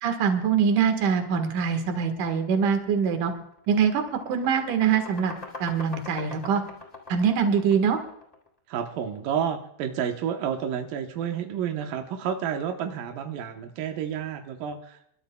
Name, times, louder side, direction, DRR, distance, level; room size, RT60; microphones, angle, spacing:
voice 1, 0.0-3.3 3.7-5.3 5.6-6.6 7.1-8.0, right 6 dB, 60° right, 6 dB, 2.3 m, -23 dB
sound 1, 3.0-3.2 3.5-8.5, left 2 dB, 10° left, 2.6 m, -42 dB
voice 2, 8.7-15.1, right 8 dB, 90° right, 4 dB, 1.9 m, -30 dB
29.0 x 12.5 x 2.3 m, 0.74 s
omnidirectional pair, 5.6 m